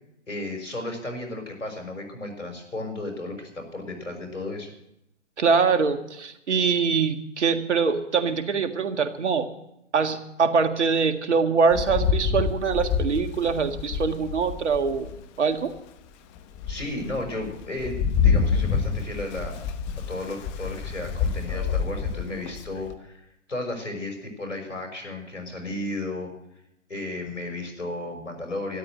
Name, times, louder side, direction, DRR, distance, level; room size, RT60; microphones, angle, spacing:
voice 1, 0.3-4.7 16.7-18.0 18.2-19.7 20.1-26.3 26.9-28.8, left 2 dB, 85° left, 3 dB, 5.9 m, -34 dB
voice 2, 5.4-9.4 9.9-15.1 15.4-15.7, right 5 dB, 70° right, 8 dB, 1.8 m, -23 dB
Rain, 11.7-15.2 15.8-15.9 16.4-22.9, left 6 dB, 25° left, 1.0 m, -27 dB
13.0 x 11.5 x 7.7 m, 0.80 s
figure-of-eight pair, 130°, 36 cm